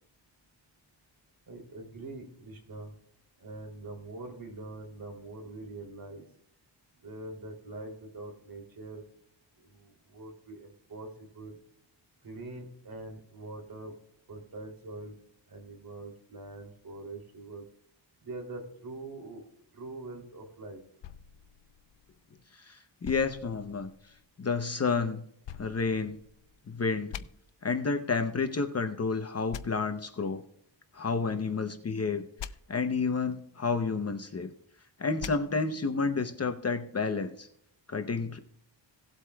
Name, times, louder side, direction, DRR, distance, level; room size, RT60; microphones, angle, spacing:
voice 1, 1.5-2.9 3.4-6.2 7.0-9.0 9.6-11.6 12.2-13.9 14.3-15.2 15.5-17.6 18.2-19.4 19.7-20.8, right 2 dB, 45° right, 3 dB, 3.1 m, -43 dB
sound 1, 21.0-22.4 23.0-24.3 25.4-26.6 27.1-27.2 29.5-29.6 32.4-32.5 35.2-35.3, left 9 dB, 70° left, 0.7 m, -44 dB
voice 2, 22.5-23.9 24.4-25.2 25.6-26.2 26.7-27.3 27.6-30.4 30.9-32.3 32.7-34.5 35.0-37.5 37.9-38.4, left 4 dB, 35° left, 7 dB, 0.8 m, -30 dB
18.0 x 8.0 x 2.3 m, 0.69 s
wide cardioid pair, 130°, 46 cm